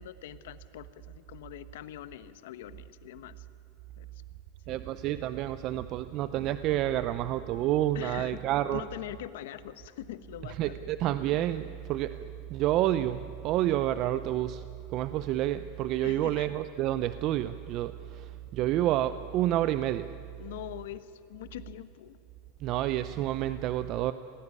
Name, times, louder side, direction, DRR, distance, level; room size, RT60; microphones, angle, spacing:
voice 1, 0.0-3.4 4.0-4.1 4.7-4.8 7.9-8.5 8.7-10.9 16.0-16.5 20.4-22.2, left 13 dB, 80° left, 13 dB, 1.1 m, -43 dB
voice 2, 4.7-8.8 10.6-14.6 14.9-20.1 22.6-24.1, right 13 dB, 40° right, 13 dB, 0.6 m, -29 dB
26.0 x 17.5 x 9.7 m, 2.8 s
supercardioid pair, 150°, 0 cm